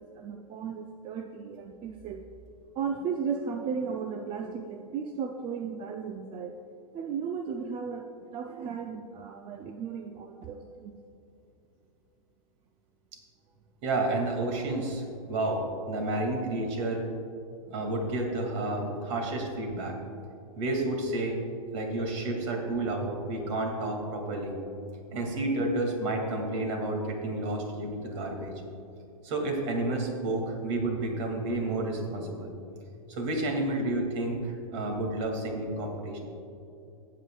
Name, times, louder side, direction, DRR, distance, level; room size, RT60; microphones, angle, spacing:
voice 1, 0.0-2.2 2.7-6.6 6.9-11.0 15.3-15.4 17.6-18.0 28.2-28.3 34.9-35.1, right 6 dB, 25° right, 5 dB, 0.5 m, -36 dB
voice 2, 13.8-17.1 17.7-20.0 20.6-21.4 21.7-24.6 25.1-28.5 29.2-32.5 33.1-36.2, right 2 dB, 50° right, 2 dB, 2.5 m, -30 dB
16.5 x 8.4 x 2.4 m, 2.6 s
hypercardioid pair, 120°, 19 cm